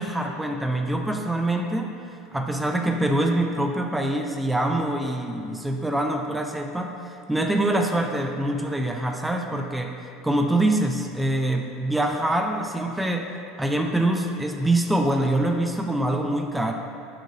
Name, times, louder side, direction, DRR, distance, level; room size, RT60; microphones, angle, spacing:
voice 1, 0.0-2.0 2.3-10.0 10.2-13.3 13.6-16.7, right 1 dB, 5° right, 3 dB, 0.4 m, -25 dB
6.6 x 3.0 x 2.7 m, 2.7 s
hypercardioid pair, 75°, 0 cm